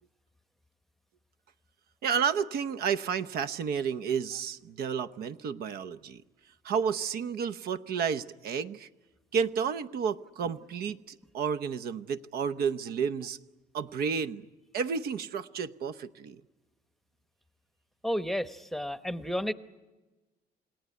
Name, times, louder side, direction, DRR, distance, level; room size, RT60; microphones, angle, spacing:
voice 1, 2.0-6.2 6.6-8.9 9.3-13.4 13.7-14.5 14.7-16.4, right 6 dB, 65° right, 11 dB, 0.9 m, -31 dB
voice 2, 18.0-19.5, equal, ahead, 11 dB, 0.9 m, -32 dB
28.5 x 18.5 x 9.5 m, 1.2 s
cardioid pair, 110°, 17 cm